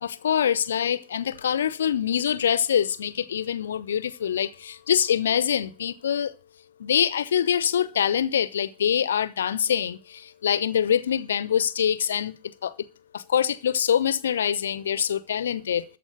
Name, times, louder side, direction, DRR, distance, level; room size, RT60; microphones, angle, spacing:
voice 1, 0.0-6.3 6.8-12.7 13.1-15.8, left 9 dB, 65° left, 0.7 m, -25 dB
13.5 x 4.8 x 9.1 m
figure-of-eight pair, 90°, 0 cm